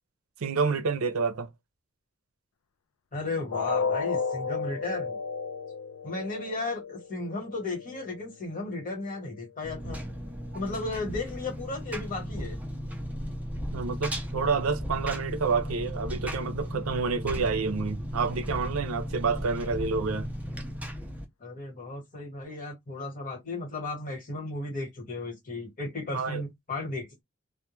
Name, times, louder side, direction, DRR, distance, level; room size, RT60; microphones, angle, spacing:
voice 1, 0.4-1.5 13.7-20.3 26.1-26.4, right 4 dB, 85° right, 0.5 m, -28 dB
voice 2, 3.1-5.2 6.0-10.0 10.5-12.6 21.4-27.2, left 2 dB, 40° left, 1.2 m, -35 dB
sound 1, 3.5-9.5 9.9-10.1 10.5-10.6, left 5 dB, 85° left, 0.3 m, -34 dB
Engine, 9.6-21.2, equal, 5° right, 0.4 m, -35 dB
2.2 x 2.1 x 2.9 m
head